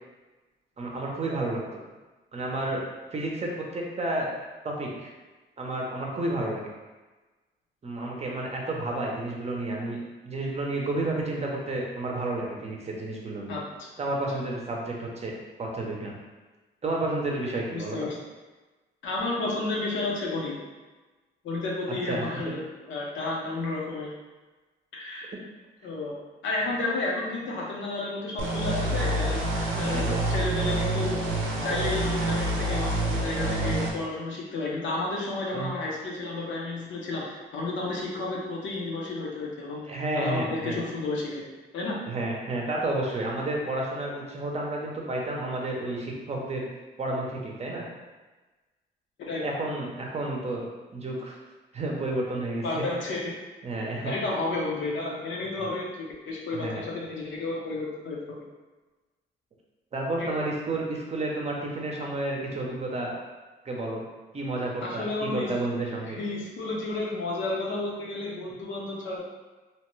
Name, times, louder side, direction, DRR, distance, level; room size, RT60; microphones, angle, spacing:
voice 1, 0.8-1.6 2.3-2.8 3.1-4.3 4.6-5.1 5.6-6.6 7.8-10.0 10.2-13.6 14.0-15.3 15.6-16.2 16.8-18.1 22.1-22.5 29.8-30.2 35.5-35.7 39.9-40.8 42.0-46.7 47.0-47.9 49.4-51.4 51.7-52.8 53.6-54.1 55.6-55.7 56.5-56.9 59.9-63.1 63.6-64.0 64.3-66.2, right 2 dB, 35° right, -1 dB, 0.6 m, -31 dB
voice 2, 17.7-18.1 19.0-20.5 21.4-22.6 22.9-24.1 24.9-25.3 25.8-26.1 26.4-29.4 29.8-39.8 40.1-41.4 41.7-42.0 49.2-49.4 52.6-53.3 54.0-58.4 60.2-60.3 64.8-65.6 66.2-69.2, left 2 dB, 70° left, -3 dB, 0.8 m, -31 dB
sound 1, 28.4-33.9, right 1 dB, 90° right, 0.6 m, -27 dB
2.8 x 2.2 x 3.1 m, 1.2 s
cardioid pair, 90°, 20 cm